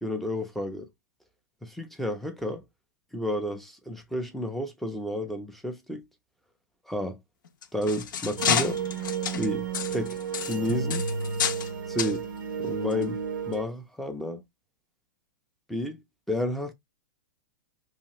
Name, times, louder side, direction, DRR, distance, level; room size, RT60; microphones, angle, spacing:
voice 1, 0.0-0.9 1.6-2.6 3.1-6.0 6.9-7.2 7.7-8.8 9.4-11.0 11.9-12.2 12.6-13.2 13.5-14.4 15.7-16.0 16.3-16.7, left 1 dB, ahead, 0.3 m, -31 dB
sound 1, 7.5-11.7 12.0-12.2 12.9-13.0 13.5-13.6, left 8 dB, 80° left, 0.6 m, -30 dB
sound 2, 8.4-13.6, right 6 dB, 70° right, 0.5 m, -32 dB
2.8 x 2.3 x 2.9 m
hypercardioid pair, 150°, 11 cm